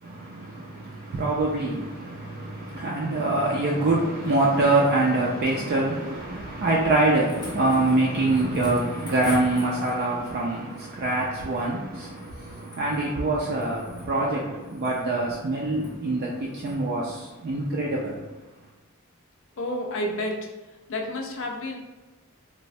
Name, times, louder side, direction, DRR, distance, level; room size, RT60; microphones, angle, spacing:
voice 1, 0.0-18.2, right 2 dB, 45° right, 0.4 m, -25 dB
sound 1, 6.9-10.2 12.1-13.1 13.5-14.1 14.6-15.1 15.7-15.9 16.5-16.8 18.1-18.2, left 1 dB, 20° left, 0.7 m, -43 dB
voice 2, 19.6-20.5 20.9-21.8, left 1 dB, 60° left, 0.5 m, -30 dB
3.1 x 2.0 x 2.6 m
head